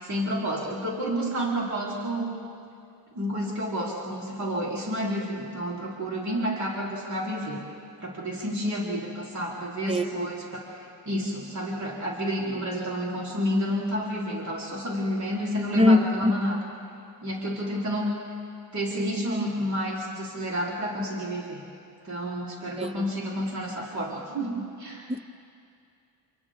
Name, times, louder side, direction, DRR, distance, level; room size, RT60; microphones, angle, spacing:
voice 1, 0.0-2.3 3.1-7.6 8.0-16.6 17.2-18.1 18.7-21.6 22.0-25.1, equal, 40° right, -4 dB, 4.0 m, -30 dB
voice 2, 15.8-16.3 22.8-23.0 25.1-25.2, left 2 dB, 15° right, 11 dB, 0.9 m, -21 dB
28.5 x 27.0 x 3.7 m, 2.5 s
cardioid pair, 85°, 45 cm